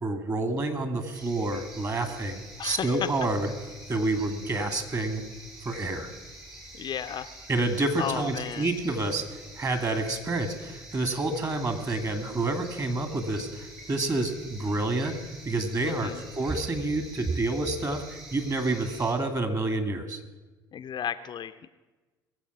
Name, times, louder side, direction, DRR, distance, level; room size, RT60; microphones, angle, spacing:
voice 1, 0.0-3.5 3.9-5.2 5.6-6.1 7.5-15.2 15.4-16.1 16.4-20.2, right 2 dB, 30° right, 8 dB, 2.1 m, -28 dB
sound 1, 1.1-19.1, right 1 dB, 70° right, 4.1 m, -46 dB
voice 2, 2.6-3.1 6.7-7.3 8.0-8.7 15.8-16.2 20.7-21.7, left 9 dB, 40° left, 9 dB, 0.6 m, -33 dB
20.5 x 7.7 x 6.0 m, 1.2 s
figure-of-eight pair, 60°, 12 cm